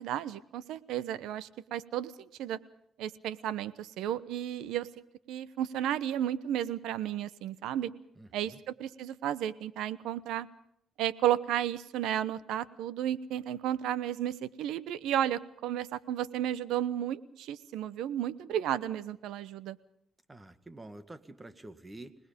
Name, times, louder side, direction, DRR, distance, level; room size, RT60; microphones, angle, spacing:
voice 1, 0.0-2.6 3.0-4.9 5.3-7.9 8.3-10.5 11.0-19.8, right 11 dB, 90° right, 17 dB, 1.0 m, -33 dB
voice 2, 8.2-8.6 20.3-22.2, right 2 dB, 20° right, 12 dB, 1.8 m, -48 dB
26.0 x 20.0 x 5.3 m, 0.72 s
cardioid pair, 90°, 0 cm